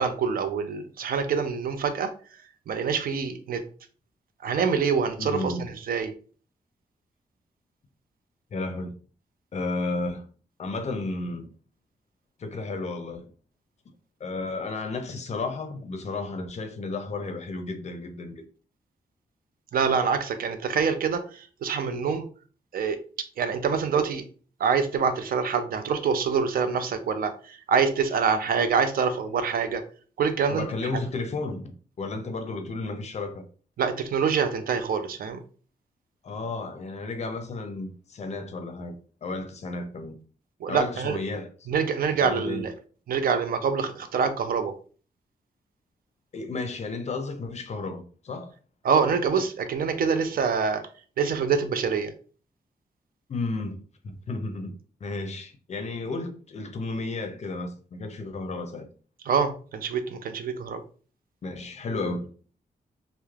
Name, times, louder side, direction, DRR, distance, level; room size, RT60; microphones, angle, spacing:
voice 1, 0.0-2.1 2.7-3.6 4.4-6.1 19.7-22.3 22.7-23.0 23.4-24.2 24.6-29.8 30.2-30.7 30.9-31.0 33.8-35.4 40.6-41.2 41.7-42.7 43.1-44.7 48.8-50.8 51.2-52.1 59.3-60.8, right 6 dB, 70° right, 0.4 m, -25 dB
voice 2, 5.2-5.7 8.5-9.0 9.5-10.2 10.6-11.5 12.4-13.3 14.2-18.5 30.5-33.4 36.2-40.2 40.7-41.5 42.2-42.7 46.3-48.5 53.3-54.8 55.0-58.9 61.4-62.3, left 3 dB, 45° left, 0.4 m, -33 dB
3.1 x 2.0 x 2.3 m
wide cardioid pair, 140°, 16 cm